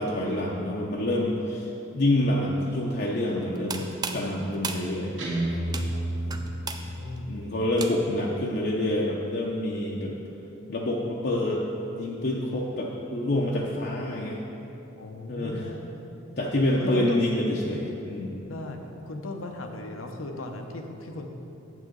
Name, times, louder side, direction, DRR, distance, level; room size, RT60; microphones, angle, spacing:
voice 1, 0.0-1.7 1.9-5.2 7.3-10.1 10.7-11.7 11.9-14.4 15.3-15.7 16.4-18.3, left 1 dB, 50° left, -3 dB, 0.6 m, -27 dB
sound 1, 3.4-8.3, right 4 dB, 20° right, 0.4 m, -37 dB
Guitar, 5.2-7.2, right 1 dB, 60° right, 1.9 m, -30 dB
voice 2, 5.7-7.3 15.0-15.9 16.8-17.2 18.5-18.8 19.1-21.3, left 2 dB, 85° left, 4 dB, 0.8 m, -37 dB
9.2 x 7.6 x 3.8 m, 2.9 s
head